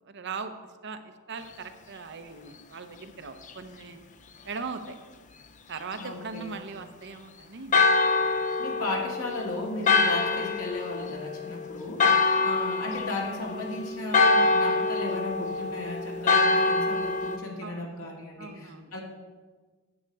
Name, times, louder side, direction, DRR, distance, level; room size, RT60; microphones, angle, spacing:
voice 1, 0.0-0.5 0.8-4.0 4.4-5.0 5.7-7.8 12.0-12.5 17.6-17.9 18.4-18.9, right 4 dB, 55° right, 8 dB, 0.8 m, -39 dB
voice 2, 6.0-6.6 8.6-12.1 12.4-19.0, left 2 dB, 85° left, -1 dB, 2.2 m, -35 dB
Church bell, 7.7-17.4, left 4 dB, 35° left, 0.4 m, -25 dB
9.7 x 8.2 x 4.7 m, 1.4 s
head